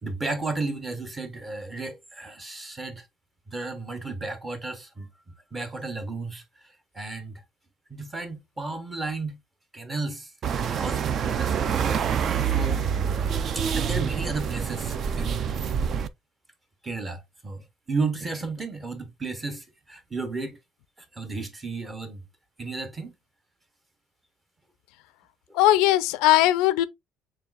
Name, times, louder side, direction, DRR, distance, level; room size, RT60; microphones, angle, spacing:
voice 1, 0.0-3.1 3.5-5.1 5.5-7.4 7.9-9.4 9.7-12.0 12.4-12.8 13.5-15.8 16.8-20.6 21.0-22.2 22.6-23.1, right 3 dB, 15° right, 0.7 m, -33 dB
sound 1, 10.4-16.1, right 7 dB, 35° right, 0.3 m, -26 dB
voice 2, 25.5-26.9, left 14 dB, 90° left, 0.4 m, -19 dB
6.7 x 3.2 x 2.4 m
cardioid pair, 175°, 0 cm